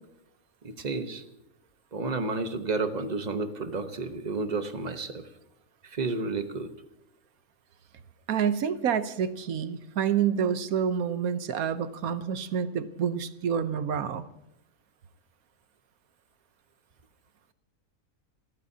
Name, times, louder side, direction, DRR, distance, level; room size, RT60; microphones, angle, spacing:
voice 1, 0.6-1.2 1.9-5.3 5.8-6.7, right 3 dB, 35° right, 8 dB, 1.1 m, -31 dB
voice 2, 8.3-14.2, right 7 dB, 80° right, 11 dB, 1.3 m, -28 dB
29.5 x 14.5 x 2.8 m, 0.88 s
omnidirectional pair, 1.5 m